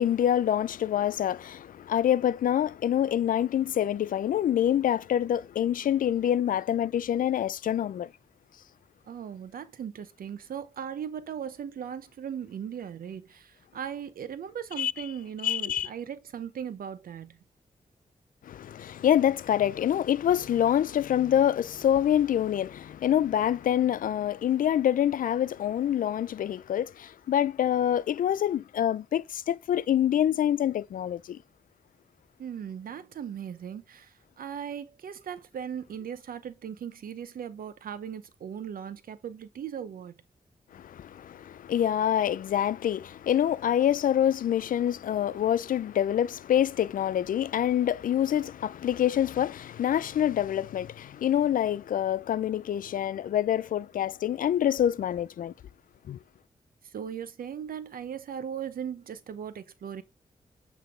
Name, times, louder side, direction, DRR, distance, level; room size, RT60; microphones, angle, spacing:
voice 1, 0.0-8.1 14.8-14.9 15.4-15.9 18.5-31.4 40.7-55.5 56.1-56.2, left 10 dB, 70° left, 0.4 m, -26 dB
voice 2, 9.1-17.4 32.4-40.1 56.9-60.0, right 8 dB, 80° right, 0.8 m, -38 dB
7.8 x 3.4 x 3.7 m
cardioid pair, 65°, 15 cm